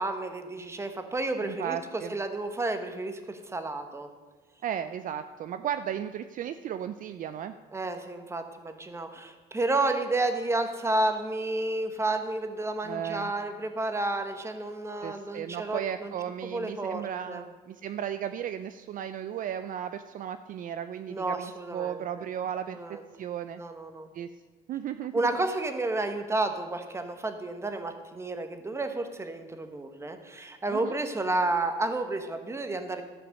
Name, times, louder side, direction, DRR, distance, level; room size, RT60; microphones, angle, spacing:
voice 1, 0.0-1.8 2.1-4.1 7.7-16.1 16.4-17.4 21.1-22.0 22.7-23.0 23.5-24.1 25.1-33.0, right 2 dB, 15° right, 7 dB, 1.2 m, -31 dB
voice 2, 1.4-2.2 4.6-7.5 12.8-13.3 15.0-22.8 23.2-23.6 24.1-24.3 24.7-25.3 30.7-31.0, right 9 dB, 55° right, 10 dB, 0.5 m, -35 dB
13.5 x 6.0 x 6.5 m, 1.3 s
cardioid pair, 110°, 17 cm